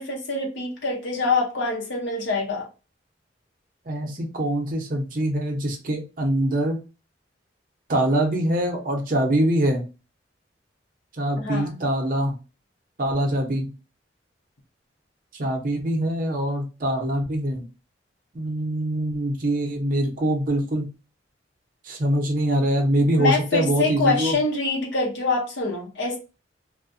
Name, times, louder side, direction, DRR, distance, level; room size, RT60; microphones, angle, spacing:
voice 1, 0.0-2.7 11.4-11.8 23.2-26.2, left 3 dB, 80° left, -2 dB, 0.8 m, -25 dB
voice 2, 3.9-6.8 7.9-9.8 11.2-12.3 13.0-13.7 15.4-17.6 18.3-20.8 21.8-24.4, right 1 dB, 50° right, 2 dB, 0.7 m, -24 dB
2.4 x 2.2 x 2.5 m, 0.31 s
head